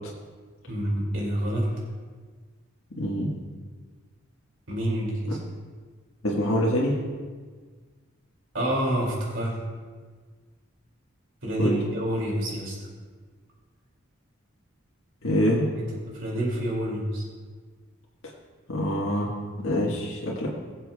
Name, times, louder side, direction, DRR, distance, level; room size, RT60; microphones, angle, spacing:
voice 1, 0.7-1.7 4.7-5.4 8.5-9.6 11.4-12.8 15.8-15.9 16.1-17.2, right 1 dB, 70° right, -3 dB, 2.5 m, -27 dB
voice 2, 3.0-3.4 6.2-7.0 11.6-11.8 15.2-15.7 18.7-20.5, equal, 80° left, -4 dB, 1.5 m, -25 dB
22.0 x 7.4 x 2.3 m, 1.5 s
head